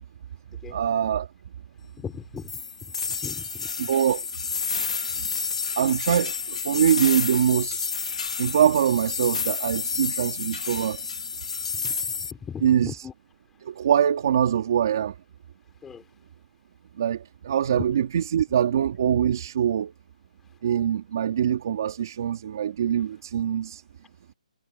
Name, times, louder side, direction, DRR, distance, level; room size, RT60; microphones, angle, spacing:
voice 1, 0.7-1.3 3.8-4.3 5.2-5.3 5.8-7.9 8.4-11.0 12.6-13.1 13.6-15.1 17.0-19.9 20.6-23.8, right 9 dB, 35° right, 2.7 m, -23 dB
voice 2, 2.0-2.5 3.1-3.7 11.8-13.1 15.8-16.0 17.8-17.9, left 7 dB, 5° left, 5.5 m, -38 dB
sound 1, 2.5-12.3, left 5 dB, 65° left, 1.8 m, -30 dB
hypercardioid pair, 175°, 4 cm